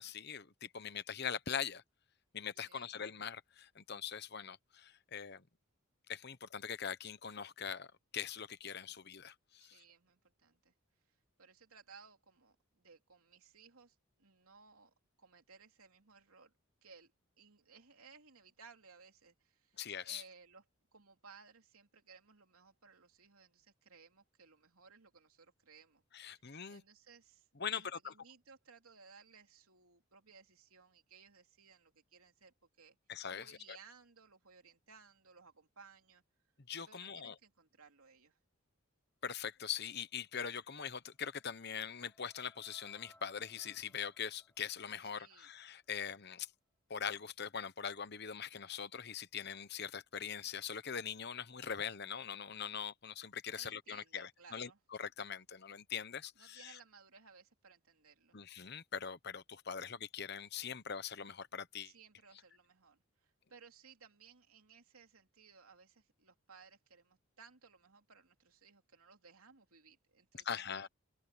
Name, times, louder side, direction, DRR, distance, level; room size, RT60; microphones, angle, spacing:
voice 1, 0.0-1.8 2.3-5.4 6.1-9.8 19.8-20.2 26.1-26.8 27.6-28.1 33.1-33.5 36.7-37.3 39.2-46.5 46.9-54.7 55.0-56.8 58.3-61.9 70.4-70.9, left 7 dB, 50° left, 1.0 m, -42 dB
voice 2, 2.6-2.9 9.6-10.7 11.1-16.5 16.8-17.1 17.4-20.6 20.9-33.0 33.2-36.2 36.9-38.4 45.1-45.5 53.5-54.8 56.3-58.4 61.8-70.9, right 5 dB, 85° right, 3.0 m, -61 dB
sound 1, 41.1-46.1, left 1 dB, 10° left, 4.2 m, -69 dB
head